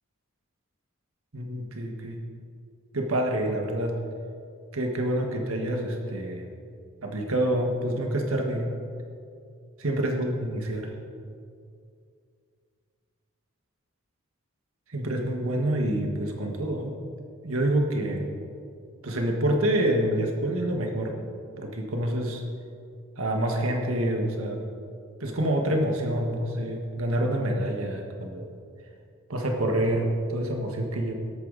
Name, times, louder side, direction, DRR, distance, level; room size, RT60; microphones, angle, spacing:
voice 1, 1.3-2.2 2.9-3.9 4.7-6.4 7.0-8.7 9.8-10.9 14.9-16.9 17.4-18.3 19.0-21.1 21.6-22.4 23.2-24.6 25.2-28.5 29.3-31.1, right 1 dB, 90° right, 2 dB, 1.6 m, -27 dB
19.5 x 8.5 x 4.1 m, 2.4 s
head